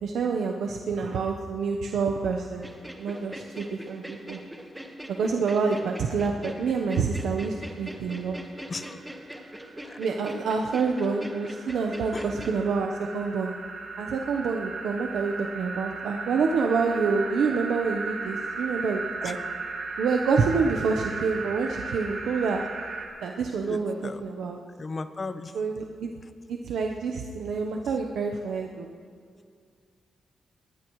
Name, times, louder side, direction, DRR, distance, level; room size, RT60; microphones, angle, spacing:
voice 1, 0.0-2.7 3.0-4.4 5.1-8.4 10.0-13.5 14.0-19.4 20.0-22.6 23.2-24.6 25.5-26.1 26.5-28.9, right 5 dB, 90° right, 1 dB, 1.0 m, -27 dB
sound 1, 2.6-12.6, equal, 5° right, 1.5 m, -42 dB
sound 2, 8.9-23.1, right 4 dB, 70° right, 3.4 m, -36 dB
voice 2, 23.7-24.2 24.8-25.5, left 3 dB, 30° left, 10 dB, 0.8 m, -35 dB
21.5 x 19.5 x 3.2 m, 2.2 s
wide cardioid pair, 125°, 0 cm